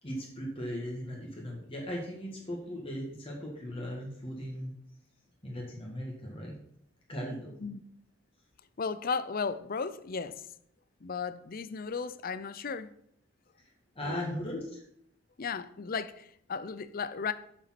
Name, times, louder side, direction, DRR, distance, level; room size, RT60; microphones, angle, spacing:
voice 1, 0.0-4.8 5.4-6.6 7.1-7.5 13.6-14.8, equal, 30° left, 2.0 m, -38 dB
voice 2, 8.8-10.4 11.0-12.9 14.0-14.5 15.4-17.3, left 5 dB, 45° left, 0.5 m, -35 dB
7.1 x 7.0 x 5.9 m
head